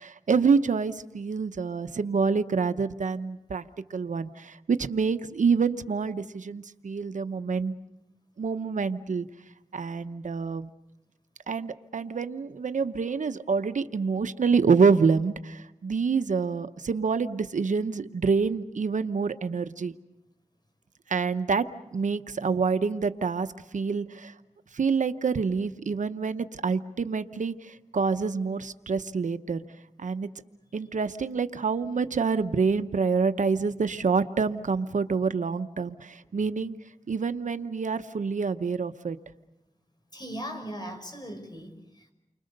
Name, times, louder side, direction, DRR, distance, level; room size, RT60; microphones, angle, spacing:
voice 1, 0.0-3.6 3.9-7.7 8.4-9.3 9.7-10.7 11.5-19.9 21.1-21.6 21.9-23.5 23.7-24.3 24.7-29.6 30.0-30.3 30.7-36.8 37.1-39.2, right 5 dB, 75° right, 10 dB, 0.9 m, -27 dB
voice 2, 40.1-42.1, equal, 35° left, 5 dB, 5.6 m, -39 dB
30.0 x 25.0 x 6.7 m, 0.91 s
wide cardioid pair, 70°, 13 cm